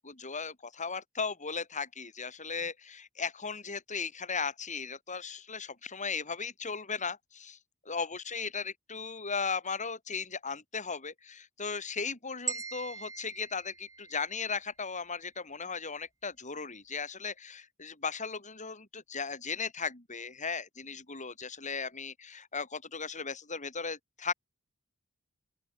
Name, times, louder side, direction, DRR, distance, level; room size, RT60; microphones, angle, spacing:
voice 1, 0.0-7.6 7.8-24.3, left 5 dB, 35° left, 7.0 m, -37 dB
sound 1, 12.5-14.7, right 4 dB, 15° right, 4.5 m, -41 dB
open air
head